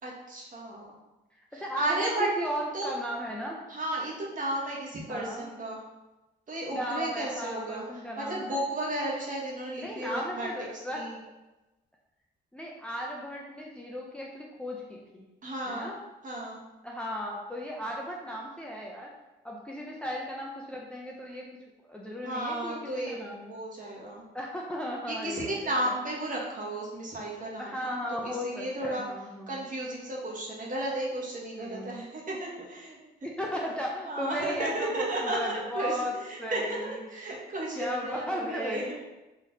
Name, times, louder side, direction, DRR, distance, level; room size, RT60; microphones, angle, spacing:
voice 1, 0.0-0.9 1.5-2.3 2.7-2.9 3.7-5.8 6.5-7.8 8.2-10.5 10.9-11.2 15.4-15.9 16.2-16.6 22.2-24.2 25.1-29.0 29.5-33.0 33.4-33.5 34.1-38.9, right 1 dB, 40° right, -4 dB, 1.5 m, -34 dB
voice 2, 1.5-3.6 5.1-5.5 6.7-8.6 9.8-11.0 12.5-15.3 15.7-16.0 16.8-19.1 19.4-21.5 21.8-22.8 23.1-23.5 24.3-25.7 27.6-29.6 31.6-32.0 33.2-36.1 36.4-37.1 37.8-38.9, equal, 5° left, -2 dB, 0.6 m, -36 dB
4.1 x 3.2 x 4.0 m, 1.0 s
cardioid pair, 90°, 20 cm